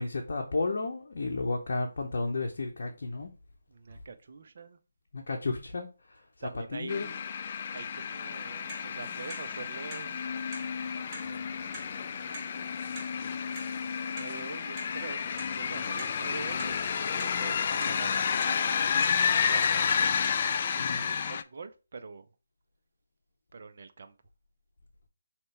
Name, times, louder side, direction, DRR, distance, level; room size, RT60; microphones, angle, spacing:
voice 1, 0.0-3.3 5.1-7.1 20.8-21.0, left 3 dB, 60° left, 0.7 m, -33 dB
voice 2, 3.7-4.8 6.4-7.2 7.7-10.3 11.3-12.0 14.1-15.3 15.5-22.3 23.5-24.1, right 4 dB, 55° right, 0.6 m, -45 dB
sound 1, 6.9-21.4, left 6 dB, 40° left, 0.3 m, -31 dB
Clock, 8.3-20.3, right 2 dB, 20° right, 1.1 m, -48 dB
5.4 x 2.9 x 3.3 m
figure-of-eight pair, 155°, 0 cm